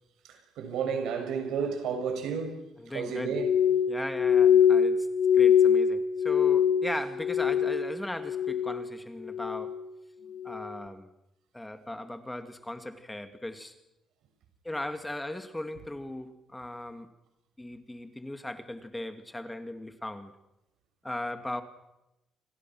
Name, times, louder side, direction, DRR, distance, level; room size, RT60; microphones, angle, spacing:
voice 1, 0.3-2.6 2.9-3.5, right 6 dB, 85° right, 6.6 m, -32 dB
voice 2, 2.8-3.4 3.9-5.1 5.3-9.8 10.4-11.1 11.5-13.7 14.6-17.1 17.6-20.4 21.0-21.6, left 1 dB, 10° left, 2.3 m, -38 dB
Glass, 3.3-7.9 8.2-8.9 9.3-9.8 10.4-10.7, left 8 dB, 45° left, 1.1 m, -23 dB
29.5 x 24.5 x 6.2 m
cardioid pair, 90°, 0 cm